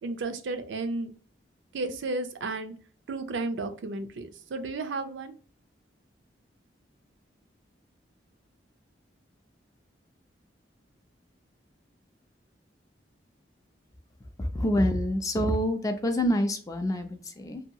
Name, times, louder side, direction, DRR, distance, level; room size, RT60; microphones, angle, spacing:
voice 1, 0.0-1.1 1.7-2.7 3.1-5.3, right 3 dB, 80° right, 8 dB, 0.4 m, -33 dB
voice 2, 14.4-17.6, equal, 20° left, 6 dB, 0.3 m, -27 dB
2.7 x 2.3 x 2.7 m, 0.40 s
head